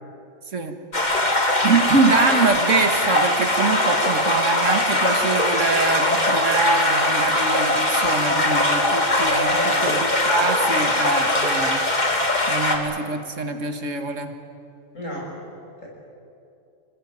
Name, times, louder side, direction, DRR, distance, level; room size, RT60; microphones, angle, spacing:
sound 1, 0.9-12.8, left 1 dB, 35° left, 2.7 m, -21 dB
voice 1, 1.6-11.8 12.5-14.3, right 4 dB, 75° right, 6 dB, 2.2 m, -24 dB
voice 2, 9.5-9.9 12.4-12.9 14.9-15.3 15.8-15.9, left 1 dB, 80° left, -2 dB, 6.9 m, -33 dB
27.0 x 19.5 x 9.5 m, 2.6 s
omnidirectional pair, 1.3 m